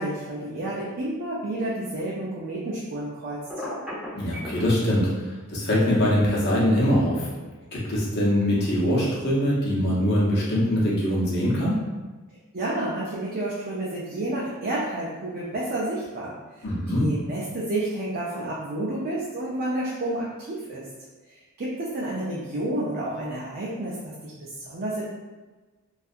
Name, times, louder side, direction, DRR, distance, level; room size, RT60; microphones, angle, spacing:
voice 1, 0.0-3.4 12.5-20.9 21.3-25.0, right 1 dB, 45° right, -6 dB, 0.4 m, -30 dB
Telephone, 3.5-4.6, left 1 dB, 5° right, 0.7 m, -33 dB
voice 2, 4.1-7.3 7.7-11.8 16.6-17.1, equal, 50° left, -6 dB, 0.8 m, -23 dB
2.7 x 2.3 x 2.4 m, 1.2 s
head